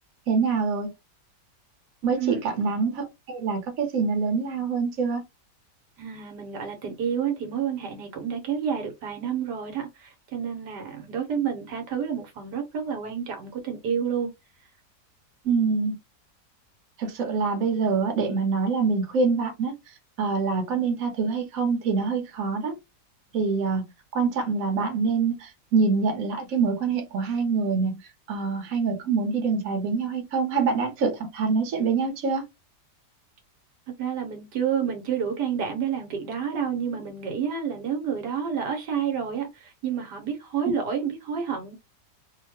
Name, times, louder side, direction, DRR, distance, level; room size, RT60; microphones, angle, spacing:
voice 1, 0.3-0.9 2.0-5.2 15.4-15.9 17.0-19.7 20.2-22.7 23.3-23.8 24.1-28.0 28.3-32.4, right 5 dB, 60° right, 1.3 m, -25 dB
voice 2, 6.0-14.3 34.0-41.8, right 7 dB, 80° right, 1.4 m, -29 dB
3.1 x 2.1 x 3.0 m
omnidirectional pair, 1.8 m